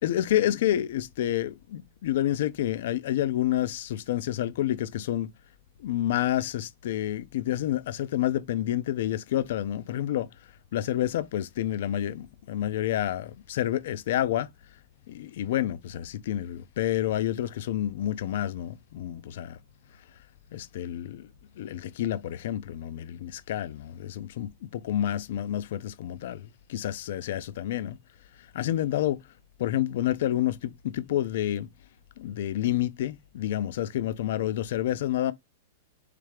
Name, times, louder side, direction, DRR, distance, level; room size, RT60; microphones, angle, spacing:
voice 1, 0.0-5.3 5.8-10.3 10.7-14.5 15.1-19.6 20.5-21.3 21.6-28.0 28.5-29.2 29.6-31.7 32.2-35.3, left 12 dB, 60° left, 0.4 m, -29 dB
3.3 x 3.3 x 3.2 m
hypercardioid pair, 105°, 0 cm